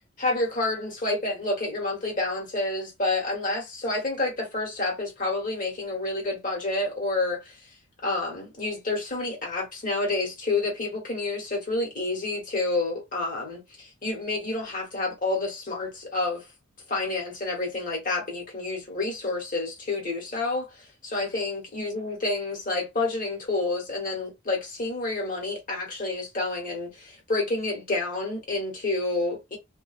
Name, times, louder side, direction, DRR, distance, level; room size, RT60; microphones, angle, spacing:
voice 1, 0.2-7.6 8.0-16.5 16.9-29.6, left 2 dB, 40° left, 1.2 m, -29 dB
2.6 x 2.2 x 2.4 m
head